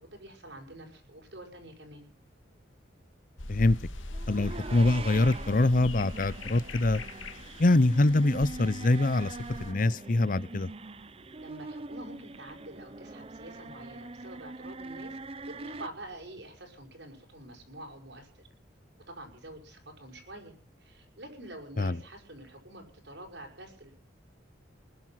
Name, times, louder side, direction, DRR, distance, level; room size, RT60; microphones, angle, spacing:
voice 1, 0.0-2.1 11.4-15.2 15.4-18.5 19.1-20.5 20.8-23.9, right 1 dB, 65° right, 5.8 m, -47 dB
sound 1, 3.4-9.7, left 1 dB, 90° left, 2.1 m, -41 dB
sound 2, 4.1-15.9, right 3 dB, 30° right, 0.7 m, -43 dB
voice 2, 4.3-7.0 7.6-9.3 9.6-10.7 21.8-21.9, left 2 dB, 45° left, 0.7 m, -24 dB
21.0 x 11.0 x 5.8 m
head